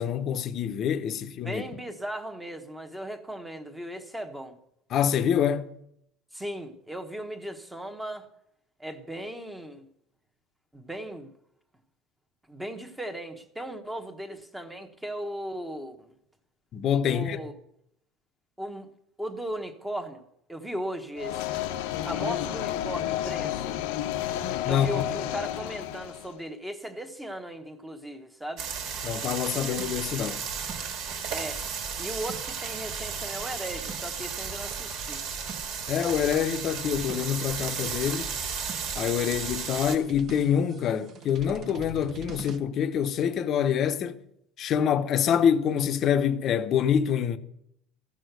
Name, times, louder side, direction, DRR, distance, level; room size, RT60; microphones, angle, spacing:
voice 1, 0.0-1.6 4.9-5.7 16.7-17.4 24.6-25.0 29.0-30.4 35.9-38.3 39.0-44.2 44.6-47.4, left 8 dB, 35° left, 0.8 m, -26 dB
voice 2, 1.4-4.6 6.3-8.3 8.8-9.9 10.7-11.3 12.5-16.1 17.1-17.5 18.6-18.9 19.2-20.2 20.5-21.6 22.0-23.8 24.7-28.7 31.3-31.6 32.0-35.2, right 1 dB, 5° right, 1.0 m, -37 dB
sound 1, 21.2-26.4, left 12 dB, 80° left, 0.7 m, -31 dB
sound 2, 28.6-40.0, right 6 dB, 55° right, 1.8 m, -34 dB
sound 3, 29.8-42.6, right 4 dB, 35° right, 0.9 m, -45 dB
14.5 x 6.3 x 8.0 m
cardioid pair, 150°, 0 cm